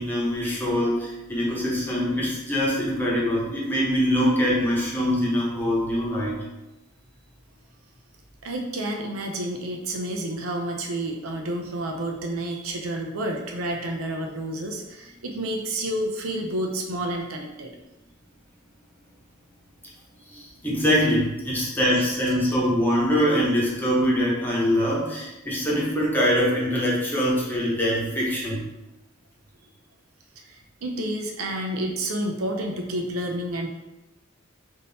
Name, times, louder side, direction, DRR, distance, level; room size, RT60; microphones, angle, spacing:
voice 1, 0.0-6.4 20.3-28.6, equal, 10° left, -5 dB, 1.0 m, -23 dB
voice 2, 8.4-17.7 30.4-33.7, right 1 dB, 80° right, 2 dB, 0.6 m, -30 dB
3.7 x 2.7 x 4.0 m, 0.99 s
head